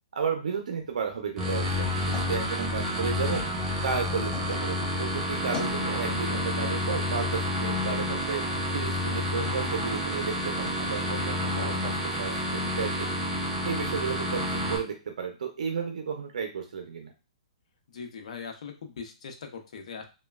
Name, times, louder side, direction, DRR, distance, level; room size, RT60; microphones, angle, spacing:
voice 1, 0.1-3.5 3.8-8.4 8.7-13.2 13.6-17.1, right 6 dB, 80° right, 4 dB, 0.5 m, -33 dB
sound 1, 0.8-4.6 5.0-5.9, left 4 dB, 20° left, 0.8 m, -44 dB
sound 2, 1.4-14.8, left 1 dB, 15° right, 0.6 m, -29 dB
voice 2, 9.4-10.0 11.5-11.7 17.9-20.0, left 6 dB, 65° left, 4 dB, 0.6 m, -40 dB
3.0 x 2.2 x 2.3 m, 0.30 s
hypercardioid pair, 160°, 4 cm